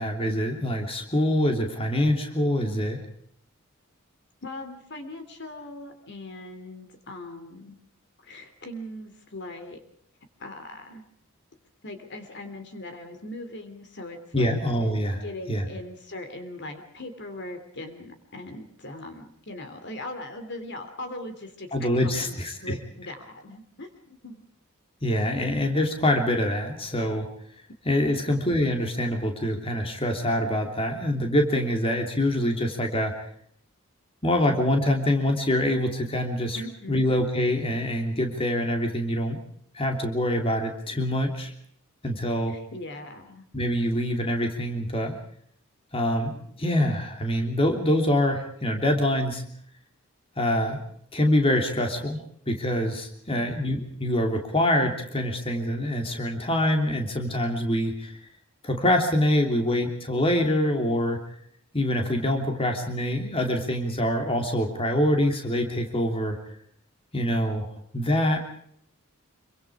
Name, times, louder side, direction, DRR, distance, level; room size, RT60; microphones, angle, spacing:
voice 1, 0.0-3.0 14.3-15.2 15.5-15.6 21.7-22.7 25.0-27.3 27.8-33.1 34.2-36.6 36.9-39.4 39.7-41.5 42.0-42.6 43.5-45.2 45.9-49.4 50.4-50.8 51.1-52.2 52.5-58.2 58.6-61.2 61.7-66.4 67.1-67.7 67.9-68.4, left 1 dB, 25° left, 3 dB, 3.1 m, -25 dB
voice 2, 4.4-7.7 8.2-9.8 10.4-11.0 11.8-14.5 15.2-24.4 28.2-28.4 36.5-37.1 42.5-43.5 53.3-53.6, left 1 dB, 55° left, 8 dB, 3.0 m, -40 dB
26.5 x 24.5 x 4.9 m, 0.67 s
head